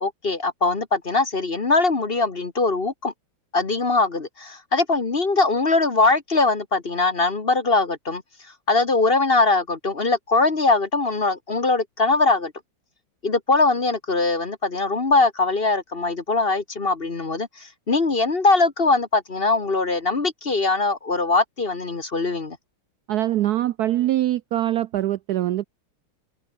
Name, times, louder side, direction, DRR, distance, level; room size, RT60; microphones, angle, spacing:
voice 1, 0.0-3.1 3.5-8.2 8.7-12.5 13.2-22.6, left 3 dB, 30° left, 1.6 m, -21 dB
voice 2, 23.1-25.7, right 13 dB, 70° right, 0.9 m, -23 dB
omnidirectional pair, 2.1 m